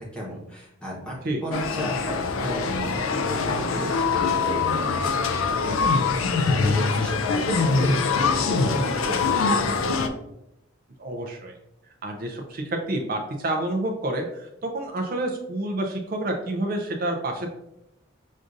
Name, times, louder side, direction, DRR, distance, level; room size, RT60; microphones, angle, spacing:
voice 1, 0.0-1.1 1.4-10.0, equal, 5° left, -5 dB, 0.9 m, -34 dB
sound 1, 1.5-10.1, left 4 dB, 90° left, 0.4 m, -23 dB
voice 2, 11.0-11.5 12.0-17.5, right 1 dB, 45° right, 2 dB, 0.4 m, -28 dB
6.2 x 2.5 x 2.5 m, 0.86 s
head